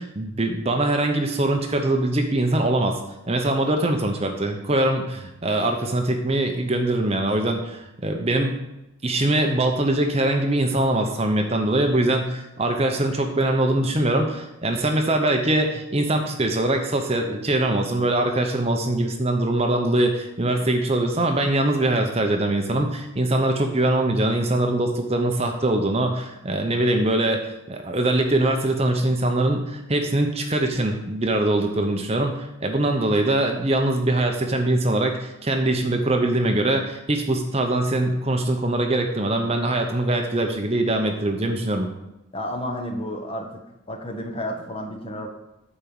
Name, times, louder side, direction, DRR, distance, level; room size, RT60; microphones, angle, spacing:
voice 1, 0.0-3.0 3.3-8.6 9.0-41.9, right 1 dB, 30° right, 3 dB, 0.8 m, -22 dB
voice 2, 42.3-43.6 43.9-45.3, equal, 25° left, 3 dB, 1.1 m, -31 dB
8.7 x 4.5 x 7.1 m, 0.92 s
head